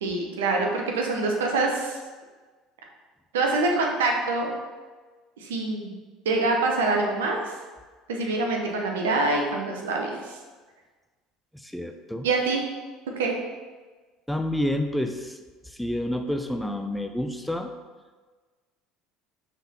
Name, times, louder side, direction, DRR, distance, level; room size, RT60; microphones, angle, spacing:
voice 1, 0.0-2.0 3.3-4.5 5.4-5.9 6.2-7.4 8.1-10.4 12.2-12.6 13.2-13.3, right 3 dB, 80° right, 1 dB, 0.9 m, -25 dB
voice 2, 11.5-12.3 14.3-15.4 15.6-17.7, left 1 dB, 5° left, 5 dB, 0.5 m, -29 dB
5.8 x 3.9 x 4.2 m, 1.4 s
hypercardioid pair, 70°, 0 cm